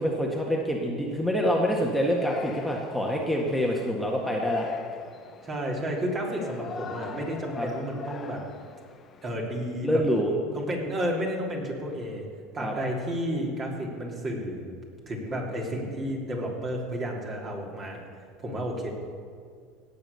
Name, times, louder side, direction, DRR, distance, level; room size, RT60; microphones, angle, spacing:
voice 1, 0.0-4.7 7.6-7.7 9.8-10.3 12.6-12.7, equal, 5° left, -2 dB, 1.7 m, -26 dB
Yell, 1.7-9.4, left 6 dB, 35° left, 1.0 m, -40 dB
voice 2, 5.4-8.4 9.2-10.0 10.5-12.3 12.5-14.7 15.1-18.1 18.4-18.9, equal, 35° right, -1 dB, 3.3 m, -31 dB
17.0 x 6.9 x 6.9 m, 2.1 s
hypercardioid pair, 80°, 0 cm